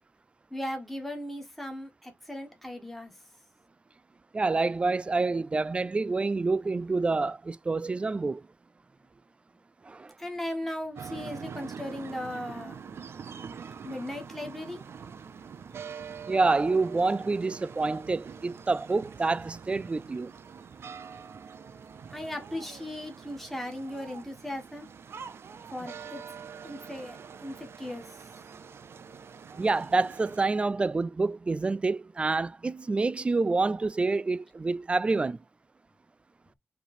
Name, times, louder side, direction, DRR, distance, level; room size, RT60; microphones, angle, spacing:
voice 1, 0.5-3.1 10.2-12.8 13.8-14.8 22.1-24.9 25.7-26.2 26.6-28.0, left 1 dB, 5° left, 1.7 m, -37 dB
voice 2, 4.3-8.4 9.9-10.1 16.3-20.3 29.6-35.4, right 3 dB, 25° right, 0.3 m, -27 dB
sound 1, 10.9-30.5, right 6 dB, 85° right, 0.7 m, -44 dB
5.1 x 3.4 x 5.5 m
wide cardioid pair, 150°, 4 cm